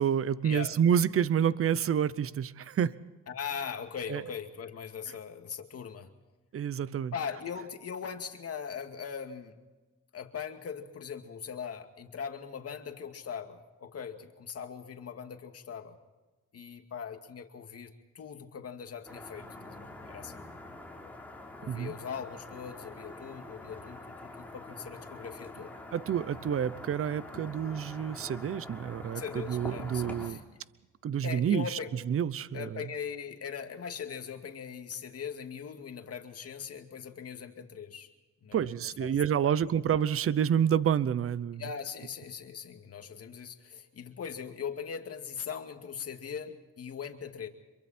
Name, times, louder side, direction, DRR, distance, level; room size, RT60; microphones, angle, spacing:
voice 1, 0.0-3.0 4.1-4.2 6.5-7.1 21.7-21.9 25.9-30.4 31.0-32.8 38.5-41.6, right 8 dB, 45° right, 0.8 m, -28 dB
voice 2, 3.3-6.1 7.1-9.6 10.1-16.0 16.5-20.4 21.6-25.7 29.1-30.4 31.2-31.9 32.5-38.1 38.4-38.7 39.0-39.2 39.4-39.6 41.6-47.5, left 7 dB, 50° left, 2.4 m, -40 dB
sound 1, 19.1-30.3, left 2 dB, 5° left, 3.9 m, -45 dB
26.5 x 23.0 x 4.4 m
cardioid pair, 90°, 30 cm